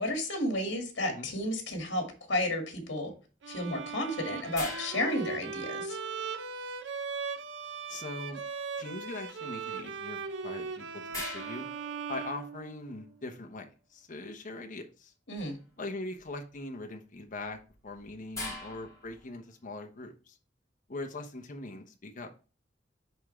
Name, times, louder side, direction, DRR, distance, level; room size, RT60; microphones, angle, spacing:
voice 1, 0.0-3.1 3.5-6.0 15.3-15.6, left 1 dB, 75° left, 3 dB, 2.1 m, -32 dB
Bowed string instrument, 3.4-13.1, right 5 dB, 75° right, 0.7 m, -39 dB
sound 1, 4.5-6.1 10.3-10.4 11.1-12.7 15.4-15.7 16.2-16.6 17.5-19.4, left 2 dB, 20° left, 2.5 m, -43 dB
voice 2, 7.9-8.4 8.8-11.7 12.1-15.1 15.8-20.4 20.9-22.3, left 2 dB, 45° left, 4 dB, 1.0 m, -41 dB
10.0 x 3.7 x 3.3 m, 0.34 s
head